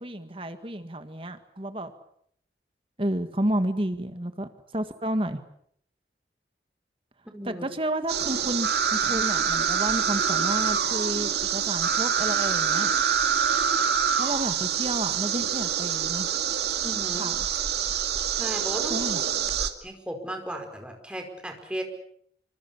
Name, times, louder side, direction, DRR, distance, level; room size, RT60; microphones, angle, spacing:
voice 1, 0.0-1.9 3.0-5.4 7.4-12.9 14.2-16.3 17.2-17.5 18.9-19.2, right 1 dB, 30° right, 9 dB, 1.7 m, -31 dB
voice 2, 7.2-7.6 16.8-17.3 18.3-19.0 19.6-21.8, right 1 dB, 5° right, 4 dB, 4.9 m, -35 dB
sound 1, 8.1-19.7, right 7 dB, 70° right, 2.3 m, -26 dB
27.5 x 25.0 x 7.1 m, 0.68 s
head